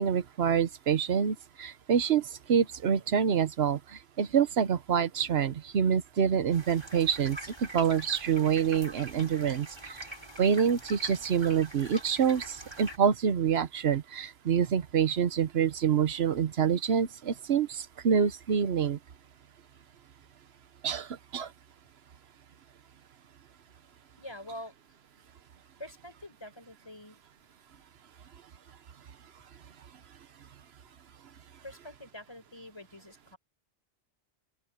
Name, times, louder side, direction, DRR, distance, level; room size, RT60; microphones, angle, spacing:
voice 1, 0.0-10.0 10.4-19.0 20.8-21.1 21.3-21.5, right 7 dB, 65° right, 1.1 m, -27 dB
sound 1, 6.5-13.0, right 1 dB, 25° right, 3.2 m, -45 dB
voice 2, 24.2-24.7 25.8-27.2 31.6-33.4, left 1 dB, 20° left, 4.8 m, -45 dB
open air
omnidirectional pair, 1.2 m